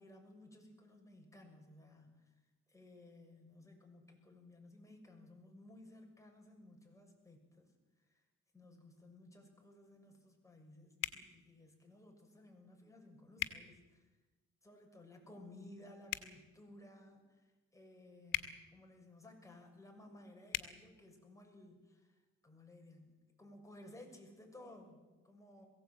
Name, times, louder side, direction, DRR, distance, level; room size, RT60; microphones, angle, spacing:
voice 1, 0.0-2.3 2.7-7.7 8.1-8.2 8.5-14.1 14.6-25.6, left 1 dB, 10° left, 2 dB, 6.5 m, -58 dB
sound 1, 11.0-11.2 13.4-13.6 16.0-16.3 18.3-18.5 20.5-20.7, left 12 dB, 85° left, 1.6 m, -38 dB
22.0 x 16.5 x 8.8 m, 1.2 s
cardioid pair, 90°, 32 cm